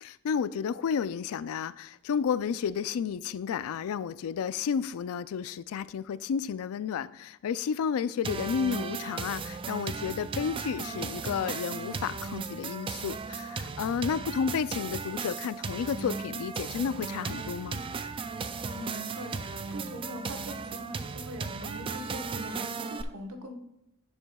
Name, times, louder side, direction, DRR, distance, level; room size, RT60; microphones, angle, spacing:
voice 1, 0.0-17.8, left 7 dB, 70° left, 0.3 m, -32 dB
sound 1, 8.2-23.0, right 5 dB, 25° right, 0.3 m, -36 dB
voice 2, 18.7-23.5, equal, 70° right, 1.1 m, -42 dB
11.0 x 7.0 x 2.3 m
head